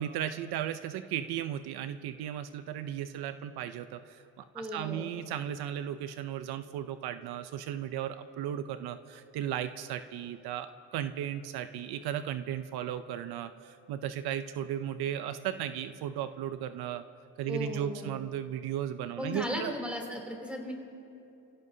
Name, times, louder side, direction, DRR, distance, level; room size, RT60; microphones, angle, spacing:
voice 1, 0.0-4.2 4.5-17.0 17.4-19.7, right 10 dB, 80° right, 11 dB, 0.7 m, -35 dB
voice 2, 4.5-5.1 17.5-18.1 19.2-20.7, left 1 dB, 5° right, 0 dB, 3.1 m, -36 dB
29.0 x 16.5 x 2.8 m, 2.8 s
cardioid pair, 115°, 37 cm